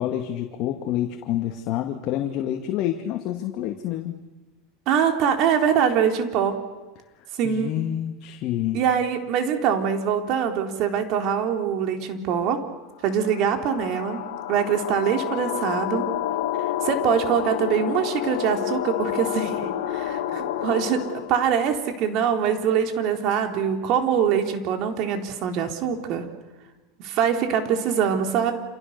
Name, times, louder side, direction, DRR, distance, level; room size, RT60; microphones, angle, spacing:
voice 1, 0.0-4.2 7.4-8.8, left 12 dB, 50° left, 4 dB, 2.2 m, -28 dB
voice 2, 4.9-6.6 7.4-7.8 8.7-12.6 13.0-14.2 14.5-16.1 16.8-26.2 27.0-28.5, right 8 dB, 55° right, 4 dB, 3.9 m, -23 dB
sound 1, 13.0-21.4, left 11 dB, 80° left, 2.1 m, -29 dB
28.5 x 28.0 x 6.9 m, 1.2 s
supercardioid pair, 125°, 0 cm